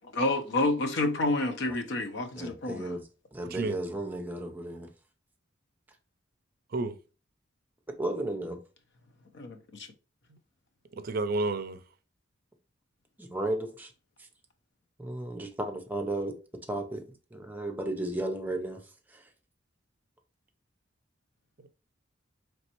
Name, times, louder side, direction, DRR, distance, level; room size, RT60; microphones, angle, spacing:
voice 1, 0.1-3.0 9.3-9.9, left 2 dB, 65° left, 0.7 m, -29 dB
voice 2, 2.4-3.0 3.3-4.9 8.0-8.6 13.2-13.9 15.0-16.4 16.7-17.0 17.3-18.8 19.1-19.2, right 1 dB, 10° right, 0.6 m, -34 dB
voice 3, 11.0-11.8 21.6-21.7, right 2 dB, 50° right, 0.4 m, -31 dB
4.2 x 3.2 x 2.9 m
head